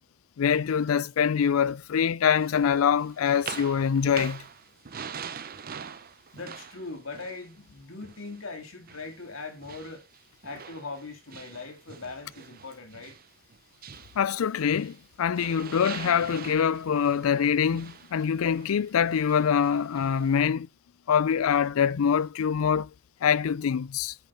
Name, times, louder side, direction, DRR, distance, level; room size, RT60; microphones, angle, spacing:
voice 1, 0.4-4.4 14.2-20.7 21.1-22.9 23.2-24.1, left 7 dB, 90° left, 0.4 m, -24 dB
sound 1, 2.4-8.5 8.9-15.1 15.3-20.5, right 7 dB, 45° right, 0.7 m, -43 dB
voice 2, 6.3-10.0 10.4-13.1, left 3 dB, 75° left, 2.4 m, -40 dB
9.4 x 5.4 x 7.0 m
head